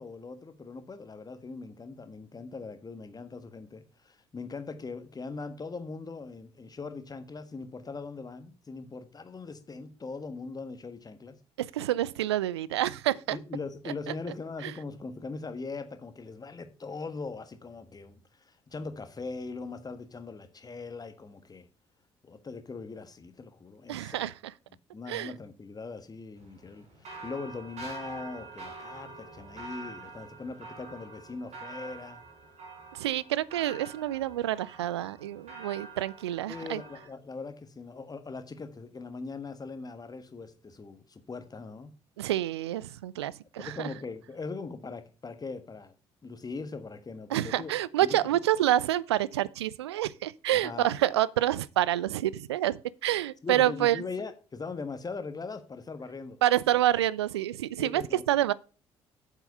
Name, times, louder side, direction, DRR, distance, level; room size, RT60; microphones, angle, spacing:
voice 1, 0.0-11.4 13.3-21.7 22.2-24.3 24.9-32.2 36.5-41.9 43.6-45.9 46.2-47.7 48.0-48.2 50.5-51.0 53.4-56.4 57.8-58.2, left 4 dB, 30° left, 1.5 m, -40 dB
voice 2, 11.6-13.4 14.6-14.7 23.9-24.3 25.1-25.3 32.9-36.8 42.2-43.9 47.3-54.0 56.4-58.5, right 13 dB, 80° right, 0.4 m, -28 dB
sound 1, 26.4-37.1, right 3 dB, 55° right, 4.8 m, -46 dB
8.1 x 7.4 x 5.5 m
figure-of-eight pair, 45°, 14 cm